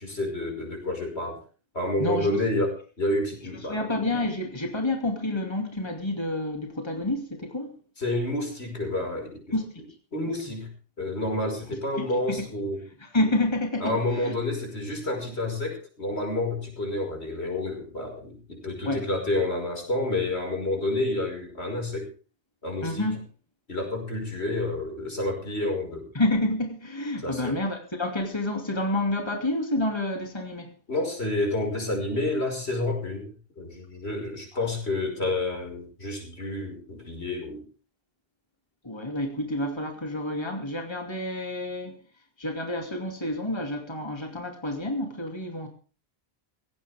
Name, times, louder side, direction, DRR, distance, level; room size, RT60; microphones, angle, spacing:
voice 1, 0.0-1.4 1.7-3.8 8.0-9.4 10.1-10.7 11.0-12.8 13.8-22.1 22.6-23.1 23.7-26.1 27.2-27.6 30.9-37.6, left 2 dB, 85° left, 2 dB, 5.6 m, -29 dB
voice 2, 2.0-2.4 3.7-7.8 9.5-9.8 12.0-12.4 13.0-14.3 18.8-19.1 22.8-23.2 26.1-30.7 34.5-34.7 38.8-42.0 42.4-45.7, left 1 dB, 25° left, 3 dB, 2.6 m, -29 dB
17.5 x 16.5 x 3.6 m, 0.37 s
omnidirectional pair, 1.1 m